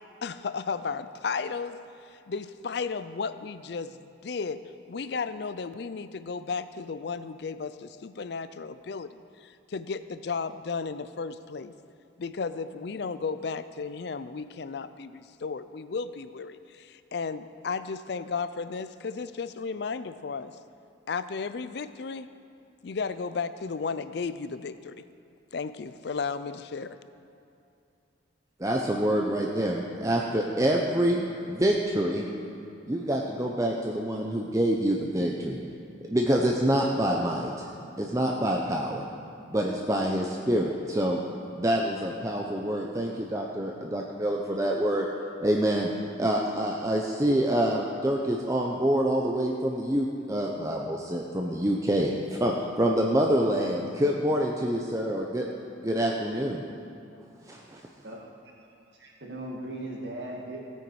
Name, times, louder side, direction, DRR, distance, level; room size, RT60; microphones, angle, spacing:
voice 1, 0.2-1.8 2.1-11.7 12.2-20.6 21.1-22.3 22.8-25.1 25.5-27.0, left 5 dB, 55° left, 13 dB, 0.4 m, -34 dB
voice 2, 28.6-32.2 32.8-35.6 36.1-37.5 38.0-39.0 39.5-41.2 41.6-45.1 45.4-45.9 46.2-55.4 55.8-56.6 57.5-57.8, right 1 dB, 15° right, 0 dB, 0.6 m, -26 dB
voice 3, 58.0-58.7 58.9-60.6, right 1 dB, 60° right, -2 dB, 2.0 m, -39 dB
16.5 x 9.1 x 4.8 m, 2.6 s
head